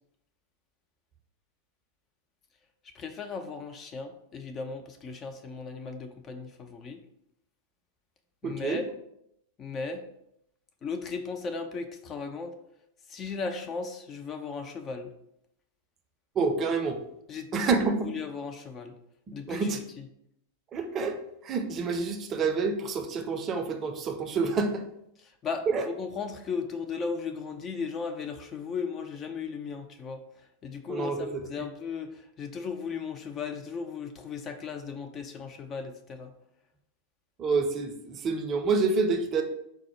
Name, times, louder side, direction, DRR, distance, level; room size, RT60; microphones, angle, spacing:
voice 1, 2.9-7.0 8.4-8.9 9.6-10.0 10.8-12.5 13.1-15.1 17.3-18.9 19.3-19.7 25.4-30.2 30.6-36.3, left 5 dB, 25° left, 6 dB, 0.4 m, -36 dB
voice 2, 8.4-8.8 16.4-17.0 17.5-18.1 19.3-19.8 20.7-24.8 25.7-25.8 30.9-31.5 37.4-39.4, right 4 dB, 30° right, 5 dB, 0.5 m, -28 dB
4.6 x 2.0 x 4.4 m, 0.77 s
figure-of-eight pair, 90°, 0 cm